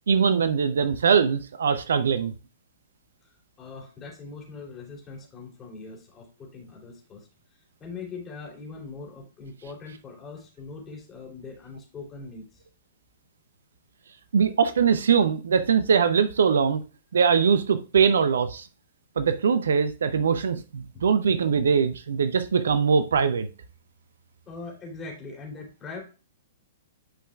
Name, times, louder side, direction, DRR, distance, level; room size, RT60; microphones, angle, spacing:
voice 1, 0.1-2.3 14.3-16.8 17.1-18.6 19.2-23.5, right 6 dB, 65° right, 0.6 m, -22 dB
voice 2, 3.2-12.6 20.9-21.0 24.5-26.0, left 4 dB, 20° left, 3.0 m, -41 dB
10.0 x 5.1 x 2.4 m
figure-of-eight pair, 110°, 0 cm